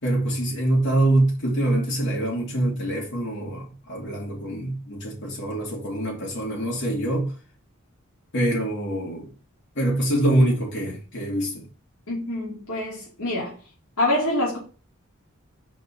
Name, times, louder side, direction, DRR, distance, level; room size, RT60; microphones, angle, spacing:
voice 1, 0.0-7.3 8.3-9.3 9.7-11.7, right 1 dB, 60° left, 3.4 m, -24 dB
voice 2, 12.1-13.5 14.0-14.6, left 1 dB, 80° left, 3.0 m, -25 dB
5.6 x 5.1 x 5.7 m
head